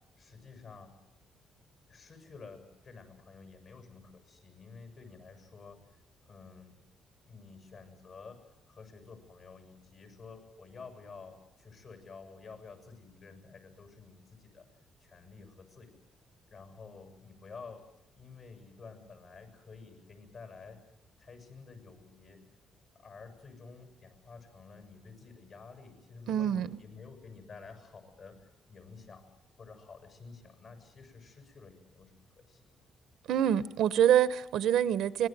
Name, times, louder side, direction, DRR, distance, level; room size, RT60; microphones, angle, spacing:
voice 1, 0.2-0.9 1.4-1.5 1.9-5.8 6.3-6.8 7.3-8.4 8.7-14.7 15.0-15.9 16.5-17.8 18.2-20.8 21.2-22.4 22.9-28.4 28.7-29.2 29.6-32.7, left 4 dB, 55° left, 6 dB, 7.4 m, -51 dB
voice 2, 26.3-26.8 33.3-35.3, right 10 dB, 80° right, 15 dB, 1.0 m, -26 dB
25.5 x 20.5 x 9.4 m, 0.83 s
cardioid pair, 90°, 0 cm